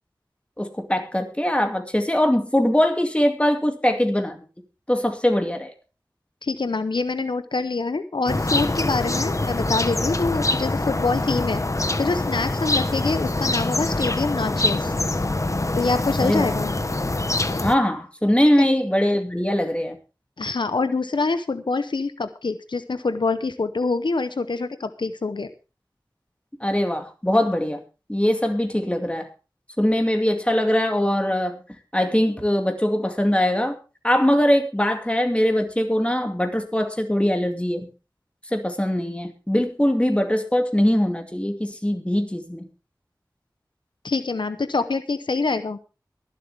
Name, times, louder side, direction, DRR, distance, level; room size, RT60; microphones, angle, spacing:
voice 1, 0.6-4.4 4.9-5.7 16.2-16.5 17.6-20.0 26.6-27.8 28.1-29.3 29.8-31.6 31.9-33.8 34.0-37.9 38.5-42.7, left 1 dB, 15° left, 5 dB, 2.3 m, -22 dB
voice 2, 6.4-11.6 12.0-14.9 15.8-16.7 18.6-18.7 20.4-25.5 44.0-45.8, left 3 dB, 90° left, 11 dB, 0.7 m, -25 dB
sound 1, 8.3-17.7, left 2 dB, 40° left, 0.9 m, -24 dB
23.0 x 7.8 x 3.5 m, 0.32 s
wide cardioid pair, 50°, 8 cm